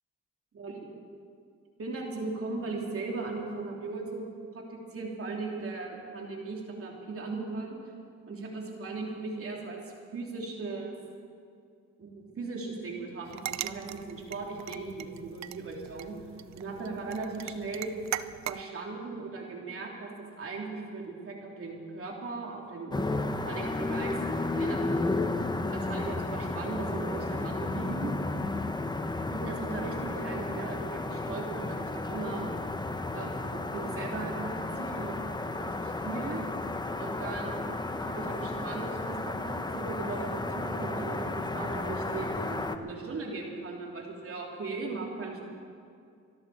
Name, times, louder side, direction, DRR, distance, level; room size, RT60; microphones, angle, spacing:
voice 1, 0.5-0.9 1.8-7.8 8.3-9.8 10.1-11.0 12.0-16.2 16.5-17.9 18.5-24.9 25.6-28.1 29.3-32.4 33.1-35.2 35.5-36.4 37.0-45.4, right 3 dB, 45° right, -1 dB, 3.3 m, -38 dB
sound 1, 13.3-18.6, right 13 dB, 65° right, 0.6 m, -40 dB
sound 2, 22.9-42.8, left 2 dB, 15° left, 0.9 m, -33 dB
24.5 x 13.0 x 4.3 m, 2.4 s
cardioid pair, 90°, 30 cm